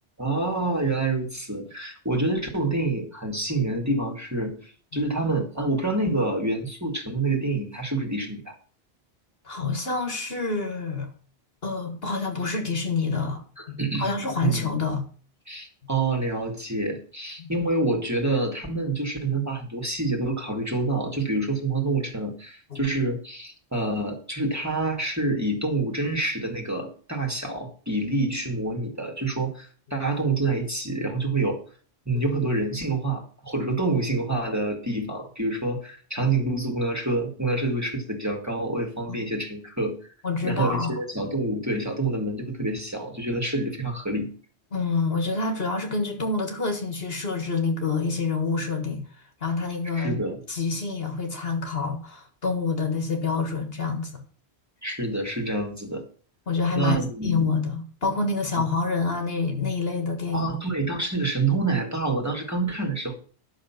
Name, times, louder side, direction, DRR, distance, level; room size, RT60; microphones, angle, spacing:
voice 1, 0.2-8.5 13.6-14.1 14.4-14.7 15.5-31.6 32.1-40.1 40.4-44.3 49.9-50.4 54.8-56.0 56.8-57.4 60.3-63.2, right 2 dB, 15° right, 2.1 m, -27 dB
voice 2, 9.5-11.1 11.6-13.4 13.7-15.0 17.4-17.5 22.7-22.8 32.1-32.2 36.2-36.3 40.2-41.0 44.7-49.0 49.4-50.2 50.5-54.1 56.5-60.6, left 4 dB, 65° left, 1.9 m, -27 dB
11.0 x 6.6 x 5.8 m
omnidirectional pair, 1.1 m